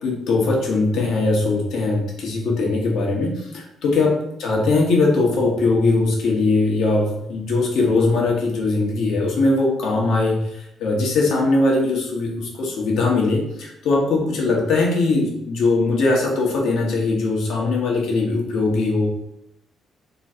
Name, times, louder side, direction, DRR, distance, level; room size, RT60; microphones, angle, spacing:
voice 1, 0.0-19.1, left 3 dB, 80° left, -2 dB, 1.1 m, -20 dB
3.1 x 2.5 x 4.2 m, 0.79 s
cardioid pair, 90°, 0 cm